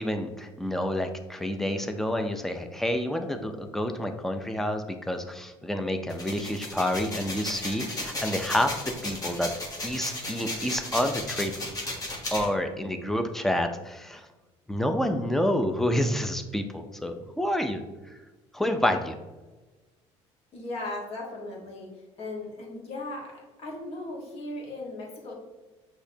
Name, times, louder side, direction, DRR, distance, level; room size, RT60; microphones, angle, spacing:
voice 1, 0.0-9.5 9.8-11.5 12.1-14.3 14.7-17.8 18.5-19.2, left 1 dB, 5° left, 6 dB, 0.4 m, -28 dB
sound 1, 6.1-12.5, left 1 dB, 30° left, 1.1 m, -34 dB
voice 2, 20.5-25.3, left 2 dB, 55° left, -3 dB, 1.4 m, -37 dB
6.3 x 2.9 x 2.7 m, 1.2 s
cardioid pair, 110°, 12 cm